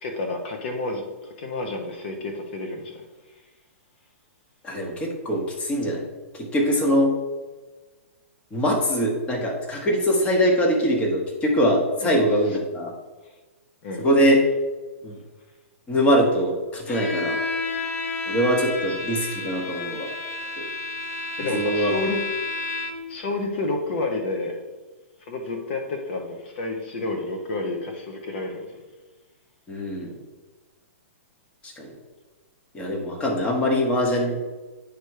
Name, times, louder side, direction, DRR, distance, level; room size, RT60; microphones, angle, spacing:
voice 1, 0.0-3.0 12.0-12.2 12.5-12.6 13.8-14.0 21.4-22.2 23.1-24.5 25.3-28.7, left 2 dB, 45° left, 3 dB, 1.0 m, -30 dB
voice 2, 4.6-6.1 6.3-7.1 8.5-12.9 14.0-14.4 15.0-15.2 15.9-17.4 18.3-20.1 21.4-21.9 29.7-30.1 31.6-31.9 32.7-34.4, equal, 15° left, 0 dB, 1.1 m, -22 dB
Bowed string instrument, 16.9-23.2, left 3 dB, 85° left, 1.5 m, -31 dB
9.9 x 3.4 x 4.8 m, 1.2 s
hypercardioid pair, 155°, 8 cm